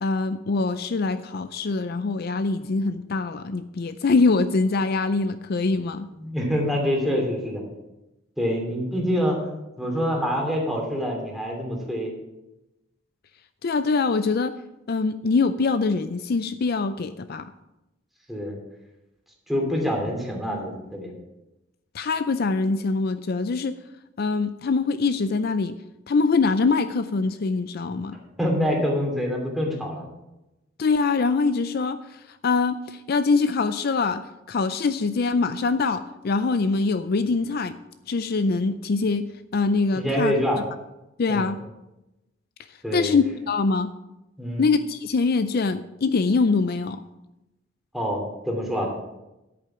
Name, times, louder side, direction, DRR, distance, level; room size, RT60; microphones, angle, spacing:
voice 1, 0.0-6.1 13.6-14.5 14.9-17.5 21.9-23.7 24.2-25.8 26.1-28.2 30.8-34.2 34.5-37.7 38.1-39.2 39.5-40.3 41.2-41.6 42.9-43.9 44.6-47.0, left 4 dB, 55° left, 11 dB, 0.4 m, -23 dB
voice 2, 6.2-7.6 8.4-9.4 9.8-12.1 18.3-18.5 19.5-21.1 28.4-30.0 40.0-40.6 41.3-41.5 42.8-43.1 44.4-44.7 47.9-48.9, equal, ahead, -1 dB, 2.7 m, -26 dB
10.0 x 8.7 x 5.7 m, 0.95 s
head